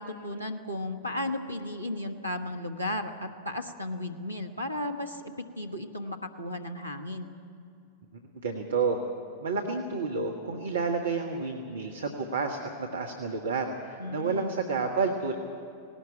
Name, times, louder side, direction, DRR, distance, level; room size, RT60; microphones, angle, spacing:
voice 1, 0.0-5.2 5.6-7.3 14.0-14.6, left 1 dB, 90° right, 6 dB, 1.2 m, -34 dB
voice 2, 8.4-9.0 9.4-15.3, right 4 dB, 65° right, 3 dB, 1.4 m, -30 dB
18.5 x 18.0 x 8.9 m, 2.6 s
figure-of-eight pair, 90°, 0 cm